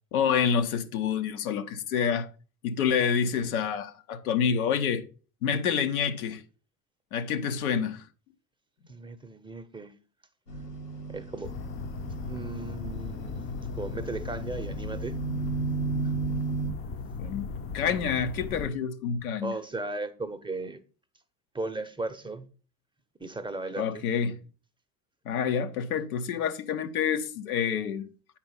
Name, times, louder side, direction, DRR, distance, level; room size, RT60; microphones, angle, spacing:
voice 1, 0.1-2.3 2.6-5.0 5.4-6.4 7.1-8.0 17.2-17.5 17.7-19.5 23.8-24.4 25.2-28.1, left 7 dB, 65° left, 1.0 m, -28 dB
voice 2, 8.9-9.9 11.1-11.5 12.3-15.2 19.4-20.8 21.5-22.5 23.2-24.0, right 2 dB, 10° right, 0.9 m, -36 dB
sound 1, 10.5-16.7, right 4 dB, 85° left, 2.1 m, -35 dB
sound 2, 11.4-18.7, left 5 dB, 30° left, 0.8 m, -37 dB
9.4 x 4.5 x 5.6 m
figure-of-eight pair, 65°, 47 cm